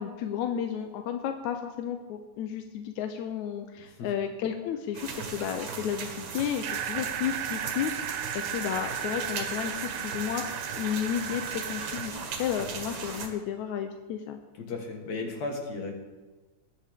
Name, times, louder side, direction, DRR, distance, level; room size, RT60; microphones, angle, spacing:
voice 1, 0.0-14.4, left 9 dB, 75° left, 6 dB, 1.8 m, -33 dB
voice 2, 3.8-4.1 14.6-15.9, left 3 dB, 55° left, 2 dB, 2.9 m, -35 dB
sound 1, 4.9-13.3, right 5 dB, 60° right, 2.5 m, -38 dB
sound 2, 6.6-12.1, right 10 dB, 85° right, 1.5 m, -35 dB
20.5 x 10.0 x 3.7 m, 1.2 s
omnidirectional pair, 4.0 m